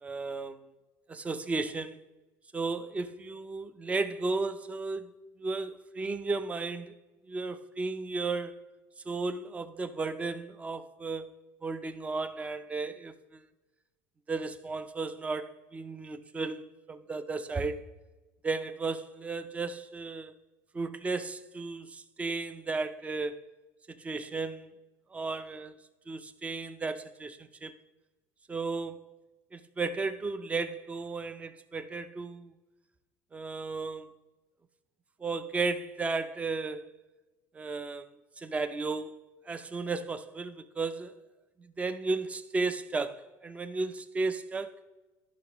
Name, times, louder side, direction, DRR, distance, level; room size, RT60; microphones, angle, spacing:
voice 1, 0.0-0.7 1.1-2.0 2.5-5.1 5.4-7.0 7.3-8.6 9.1-11.3 11.6-13.4 14.3-17.9 18.4-20.3 20.7-23.4 23.9-24.7 25.1-25.8 26.1-27.7 28.5-29.2 29.5-32.5 33.3-34.1 35.2-36.9 37.5-38.1 38.4-39.2 39.5-41.1 41.6-44.8, right 3 dB, 15° right, 0.5 m, -34 dB
13.5 x 5.9 x 3.0 m
cardioid pair, 135°, 8 cm